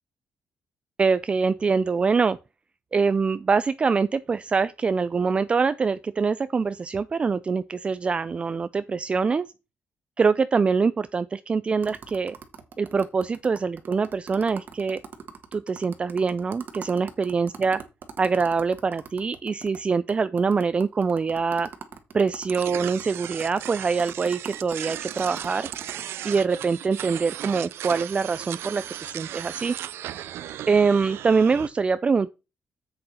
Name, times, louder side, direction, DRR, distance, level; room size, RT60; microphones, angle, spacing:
voice 1, 1.0-2.4 2.9-9.5 10.2-12.3 12.8-15.0 15.5-17.8 18.2-21.7 22.1-25.7 26.2-29.7 30.7-32.3, right 5 dB, 30° right, 0.3 m, -24 dB
sound 1, 11.8-19.8 20.1-20.2 20.4-26.0, right 7 dB, 55° right, 1.4 m, -42 dB
sound 2, 22.5-31.7, right 12 dB, 85° right, 0.5 m, -36 dB
7.7 x 6.6 x 4.2 m
cardioid pair, 120°, 4 cm